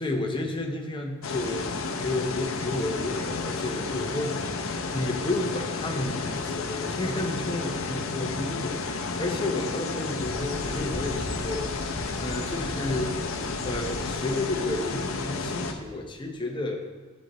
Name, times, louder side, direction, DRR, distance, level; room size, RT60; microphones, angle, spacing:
voice 1, 0.0-16.8, left 2 dB, 20° left, 3 dB, 0.8 m, -32 dB
sound 1, 1.2-15.7, left 4 dB, 65° left, 0.7 m, -32 dB
sound 2, 10.2-16.1, equal, 25° right, 1.5 m, -40 dB
10.5 x 7.3 x 3.1 m, 1.3 s
head